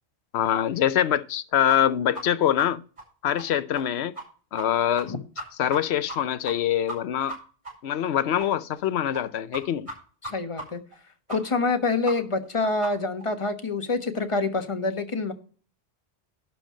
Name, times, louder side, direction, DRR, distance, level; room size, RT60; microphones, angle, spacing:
voice 1, 0.3-2.8 3.2-4.1 4.5-5.1 5.6-7.4 7.8-9.9, left 10 dB, 85° left, 0.9 m, -24 dB
sound 1, 1.7-1.8 2.1-2.2 2.6-2.7 3.0-3.1 3.4-3.5 3.7-3.8 4.1-4.2 4.6-4.7 5.0-5.1 5.4-5.8 6.1-6.2 6.4-6.5 6.9-7.0 7.3-7.4 7.6-7.7 8.0-8.1 8.4-8.5 8.8-8.9 9.1-9.2 9.5-9.6 9.9-10.0 10.2-10.3 10.6-10.7 10.9-11.0 11.3-11.4 11.7-11.8 12.0-12.1 12.4-12.5 12.8-12.9 13.2-13.3, right 1 dB, 30° right, 5.1 m, -35 dB
voice 2, 10.2-10.8 11.3-15.3, left 3 dB, 30° left, 1.3 m, -26 dB
11.5 x 4.5 x 7.4 m
omnidirectional pair, 1.1 m